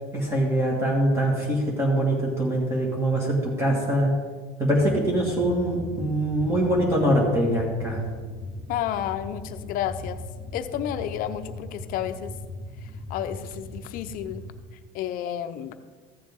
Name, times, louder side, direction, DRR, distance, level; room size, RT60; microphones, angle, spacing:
voice 1, 0.1-4.1 4.6-8.0, right 1 dB, 15° right, -3 dB, 1.9 m, -23 dB
sound 1, 4.7-14.6, left 2 dB, 10° left, 1.7 m, -39 dB
voice 2, 8.7-10.2 10.5-12.3 12.8-14.4 14.9-15.8, left 11 dB, 55° left, 10 dB, 0.7 m, -31 dB
14.5 x 7.3 x 3.6 m, 1.4 s
cardioid pair, 140°, 18 cm